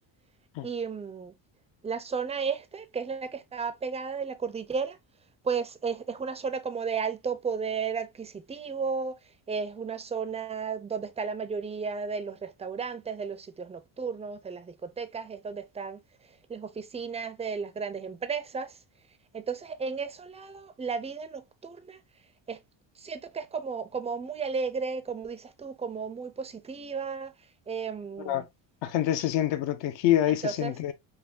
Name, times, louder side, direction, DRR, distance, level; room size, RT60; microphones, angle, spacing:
voice 1, 0.6-1.3 1.8-5.0 5.4-9.1 9.5-16.0 16.5-18.8 19.3-22.0 22.5-22.6 23.0-27.3 27.7-28.5 30.3-30.7, right 5 dB, 15° right, 0.4 m, -34 dB
voice 2, 28.8-30.9, left 12 dB, 65° left, 0.7 m, -26 dB
5.7 x 2.2 x 2.4 m
cardioid pair, 100°, 48 cm